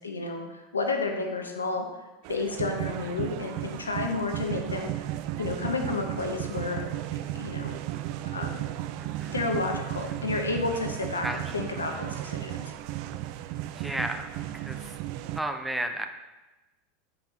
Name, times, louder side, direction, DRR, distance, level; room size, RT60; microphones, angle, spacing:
voice 1, 0.0-1.9 2.3-4.9 5.4-6.8 7.3-7.8 8.2-8.6 9.3-12.7, left 3 dB, 80° left, 4 dB, 0.8 m, -31 dB
sound 1, 2.2-15.4, right 13 dB, 50° right, 0.3 m, -35 dB
voice 2, 9.0-9.4 11.2-11.4 13.7-15.0 15.3-16.1, right 1 dB, 5° right, 5 dB, 0.6 m, -33 dB
8.6 x 4.8 x 3.1 m, 1.1 s
figure-of-eight pair, 80°, 0 cm